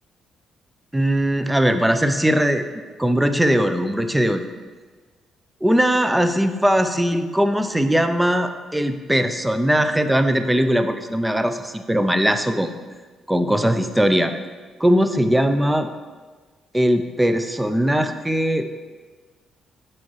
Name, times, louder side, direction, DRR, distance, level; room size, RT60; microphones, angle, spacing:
voice 1, 0.9-2.6 3.0-4.5 5.6-12.7 13.3-14.3 14.8-15.9 16.7-18.7, equal, 10° right, 8 dB, 0.4 m, -20 dB
7.1 x 4.3 x 3.1 m, 1.4 s
cardioid pair, 90°, 0 cm